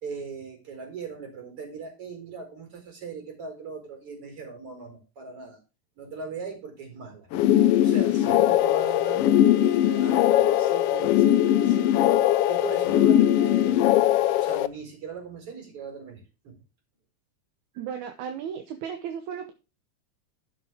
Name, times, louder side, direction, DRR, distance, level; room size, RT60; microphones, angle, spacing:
voice 1, 0.0-5.6 6.0-7.3 7.8-12.1 12.5-13.8 14.4-16.5, right 5 dB, 50° right, 3 dB, 5.2 m, -39 dB
sound 1, 7.3-14.7, left 12 dB, 85° left, 1.3 m, -20 dB
sound 2, 8.6-13.7, left 8 dB, 65° left, 1.8 m, -37 dB
voice 2, 17.8-19.5, right 8 dB, 80° right, 6 dB, 2.4 m, -35 dB
11.5 x 7.6 x 3.6 m, 0.29 s
omnidirectional pair, 3.4 m